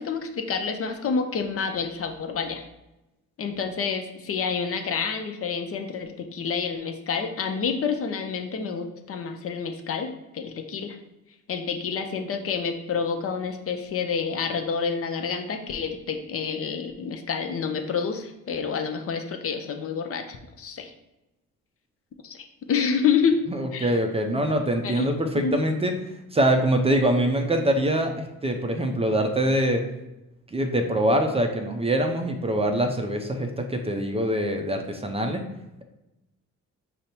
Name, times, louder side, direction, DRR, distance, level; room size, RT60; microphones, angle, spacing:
voice 1, 0.0-2.7 3.4-11.0 11.5-20.9 22.2-23.4 23.7-23.9 24.8-25.1 25.4-25.5, left 6 dB, 50° left, 5 dB, 0.6 m, -28 dB
voice 2, 23.5-25.9 26.3-29.8 30.5-35.4, right 1 dB, 20° right, 4 dB, 0.5 m, -24 dB
5.2 x 2.1 x 4.3 m, 0.95 s
cardioid pair, 90°, 30 cm